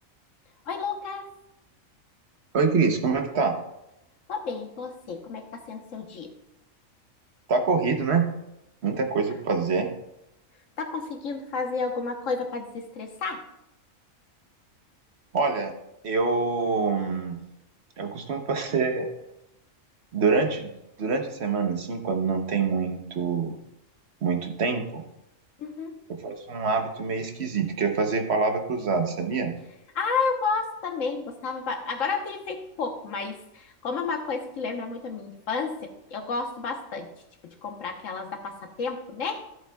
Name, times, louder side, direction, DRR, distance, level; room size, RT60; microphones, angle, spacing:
voice 1, 0.6-1.3 4.3-6.3 10.8-13.5 25.6-26.0 29.9-37.1 37.4-39.4, left 4 dB, 75° left, 4 dB, 1.4 m, -31 dB
voice 2, 2.5-3.6 7.5-8.3 8.8-9.9 15.3-15.7 16.0-17.4 18.0-19.1 20.1-20.7 21.0-23.6 24.2-25.0 26.2-29.5, right 4 dB, 55° right, 5 dB, 1.2 m, -25 dB
13.5 x 7.8 x 2.3 m, 0.87 s
omnidirectional pair, 1.3 m